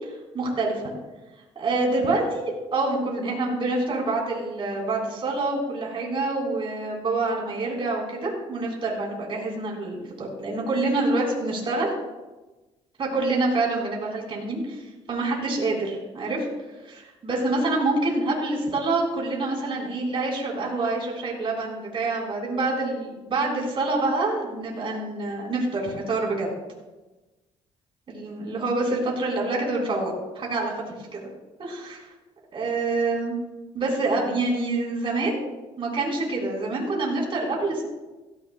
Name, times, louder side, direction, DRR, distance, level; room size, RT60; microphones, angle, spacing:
voice 1, 0.3-0.8 1.6-11.9 13.0-16.5 16.8-26.5 28.1-31.3 31.6-32.1 32.5-33.4 33.7-35.4 35.8-37.8, right 2 dB, 40° right, -2 dB, 3.9 m, -26 dB
16.5 x 15.0 x 2.2 m, 1.1 s
cardioid pair, 115°, 13 cm